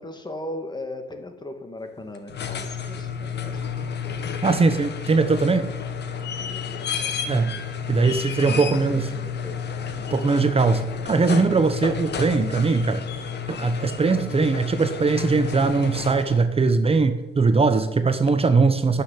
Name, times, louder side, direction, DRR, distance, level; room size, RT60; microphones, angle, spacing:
voice 1, 0.0-3.9 6.4-8.0 8.6-9.6, left 1 dB, 20° left, 6 dB, 2.2 m, -38 dB
sound 1, 2.1-16.5 18.3-18.4, left 6 dB, 60° left, 1.6 m, -31 dB
voice 2, 4.4-5.7 7.3-7.5 7.9-9.1 10.1-13.0 13.5-19.0, right 4 dB, 30° right, 9 dB, 1.0 m, -20 dB
12.5 x 6.7 x 9.9 m, 1.0 s
cardioid pair, 90°, 20 cm